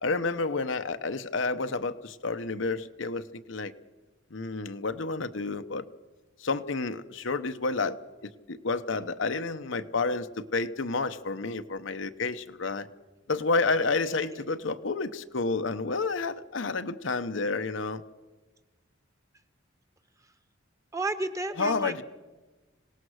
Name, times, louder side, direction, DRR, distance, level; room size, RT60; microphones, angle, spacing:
voice 1, 0.0-3.7 4.3-5.8 6.4-12.9 13.3-18.0 21.6-22.0, left 3 dB, 70° left, 10 dB, 0.9 m, -30 dB
voice 2, 20.9-22.0, right 2 dB, 15° right, 9 dB, 1.2 m, -32 dB
26.0 x 18.0 x 6.4 m, 1.2 s
head